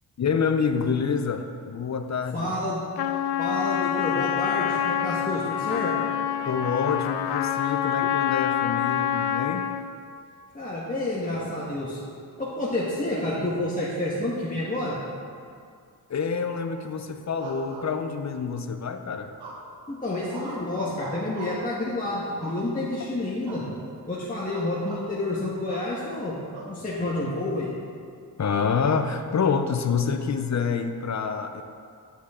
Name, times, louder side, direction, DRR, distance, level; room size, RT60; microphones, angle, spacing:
voice 1, 0.2-2.5 6.4-9.7 16.1-19.3 28.4-31.6, left 5 dB, 45° left, 7 dB, 0.7 m, -27 dB
voice 2, 2.3-2.9 3.4-5.9 10.5-12.0 12.4-15.0 19.9-23.6 24.1-26.4 26.6-27.7, left 1 dB, 20° left, -8 dB, 1.6 m, -29 dB
Trumpet, 3.0-9.9, left 10 dB, 80° left, 0.6 m, -26 dB
sound 1, 17.4-18.4 19.4-19.9 20.3-21.7 22.4-23.0 23.4-23.7 24.0-24.2 24.5-25.1 25.7-25.9 26.5-27.3, right 2 dB, 70° right, 1.5 m, -40 dB
11.0 x 7.2 x 3.8 m, 2.3 s
cardioid pair, 80°, 40 cm